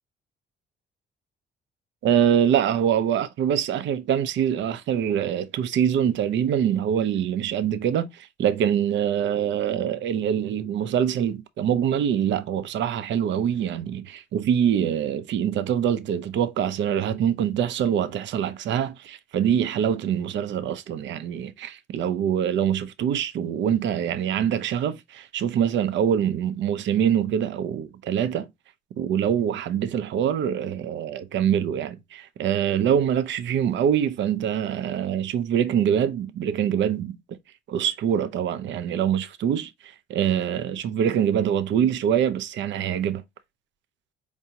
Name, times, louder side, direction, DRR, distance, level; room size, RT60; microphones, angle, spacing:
voice 1, 2.0-28.5 29.0-37.4 37.7-43.2, right 9 dB, 70° right, 0.5 m, -24 dB
4.6 x 2.6 x 2.8 m
cardioid pair, 90°, 20 cm